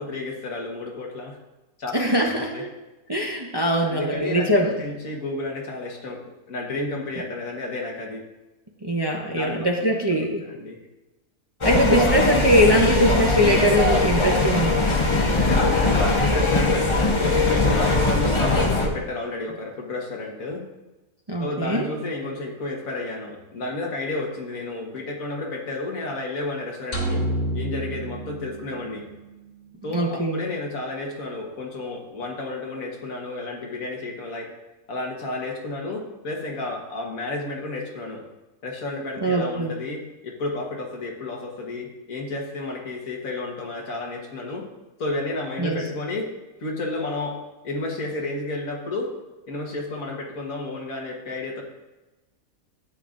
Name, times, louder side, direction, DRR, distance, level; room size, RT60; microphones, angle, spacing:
voice 1, 0.0-1.4 1.8-1.9 2.3-2.6 3.8-4.5 4.8-8.2 9.3-9.9 10.4-10.8 15.3-20.6 21.4-27.2 27.5-29.1 29.8-34.5 34.9-38.2 38.6-44.7 45.0-46.3 46.6-49.1 49.5-51.6, left 2 dB, 75° left, 0 dB, 1.9 m, -31 dB
voice 2, 1.9-2.7 3.1-4.7 8.8-10.5 11.6-14.8 21.3-21.9 29.9-30.4 39.2-39.7 45.6-45.8, equal, 25° right, 0 dB, 0.7 m, -21 dB
sound 1, 11.6-18.9, left 2 dB, 25° left, 0.8 m, -21 dB
sound 2, 26.9-29.2, right 1 dB, 60° left, 2.1 m, -28 dB
12.5 x 8.8 x 2.6 m, 1.1 s
omnidirectional pair, 1.4 m